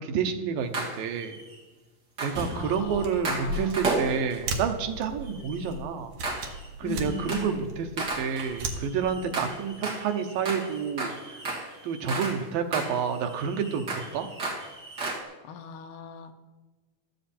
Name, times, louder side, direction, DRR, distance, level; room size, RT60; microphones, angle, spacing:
voice 1, 0.0-1.4 2.2-6.1 6.8-11.4 11.8-14.3, right 6 dB, 90° right, 6 dB, 2.8 m, -29 dB
sound 1, 0.7-1.6 2.2-4.5 5.2-5.7 6.2-6.7 7.0-7.6 8.0-12.5 12.7-15.2, right 2 dB, 35° right, 2.6 m, -34 dB
voice 2, 2.5-3.8 5.4-5.6 6.8-7.6 15.4-16.3, left 5 dB, 75° left, 5 dB, 2.5 m, -39 dB
sound 2, 2.8-9.5, right 2 dB, 70° right, 2.7 m, -37 dB
15.0 x 12.5 x 4.4 m, 1.2 s
omnidirectional pair, 3.9 m